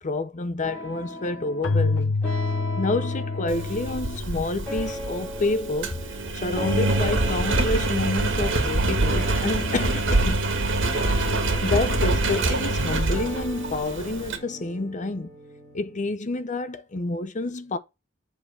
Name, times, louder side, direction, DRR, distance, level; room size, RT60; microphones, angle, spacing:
voice 1, 0.0-2.2 2.8-10.4 11.6-15.3 15.7-17.8, left 2 dB, 40° left, 0.7 m, -28 dB
sound 1, 0.6-4.2 4.6-8.6 9.0-16.1, left 1 dB, 10° left, 4.0 m, -38 dB
Keyboard (musical), 1.6-5.2, left 3 dB, 85° left, 0.7 m, -28 dB
Engine, 3.5-14.4, right 2 dB, 70° right, 1.5 m, -25 dB
7.5 x 3.9 x 4.2 m
head